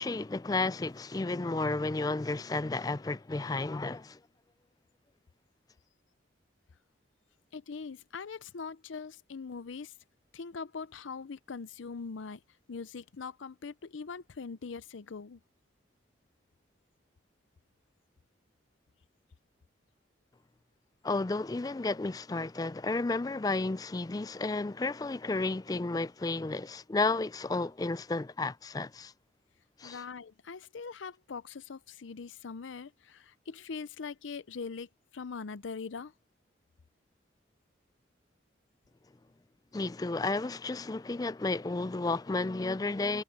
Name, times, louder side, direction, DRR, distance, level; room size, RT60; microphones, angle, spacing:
voice 1, 0.0-4.2 21.0-29.1 29.8-30.0 39.7-43.2, left 3 dB, 20° left, 0.3 m, -32 dB
voice 2, 7.5-9.9 10.3-12.4 12.7-15.4 29.8-36.1, left 5 dB, 85° left, 0.6 m, -42 dB
head